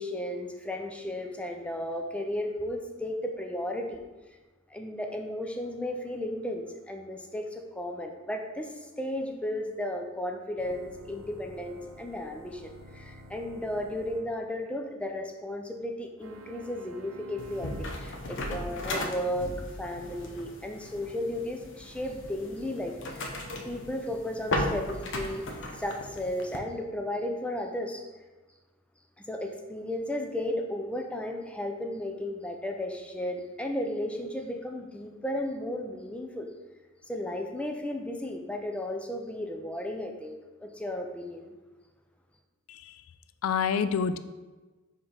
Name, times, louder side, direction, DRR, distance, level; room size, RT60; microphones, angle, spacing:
voice 1, 0.0-4.0 4.7-8.7 9.0-19.5 19.8-23.3 23.6-25.4 25.7-28.1 29.2-36.5 37.1-41.5, left 1 dB, 5° left, 3 dB, 0.5 m, -34 dB
sound 1, 10.6-14.3 16.2-18.0, right 1 dB, 65° right, 0.7 m, -49 dB
sound 2, 17.4-26.6, left 1 dB, 60° left, 0.8 m, -36 dB
voice 2, 42.7-43.0 43.4-44.2, left 6 dB, 85° left, 12 dB, 0.3 m, -28 dB
4.9 x 3.7 x 5.6 m, 1.2 s
head